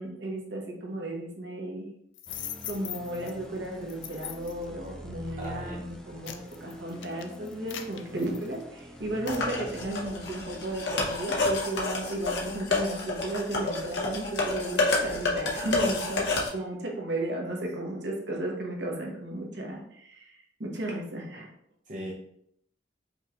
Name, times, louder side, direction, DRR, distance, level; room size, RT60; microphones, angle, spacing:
voice 1, 0.0-1.9 2.6-21.5, right 1 dB, 70° right, -1 dB, 1.0 m, -34 dB
sound 1, 2.1-3.3 3.9-4.6 5.3-5.5 5.9-8.8 9.3-9.5, left 10 dB, 90° left, 0.4 m, -41 dB
sound 2, 2.3-10.8, equal, 5° left, 0.4 m, -46 dB
voice 2, 5.4-5.8 21.9-22.1, right 1 dB, 45° right, -5 dB, 0.7 m, -38 dB
sound 3, 9.3-16.5, left 2 dB, 65° left, 0.9 m, -29 dB
5.2 x 2.5 x 2.9 m, 0.72 s
head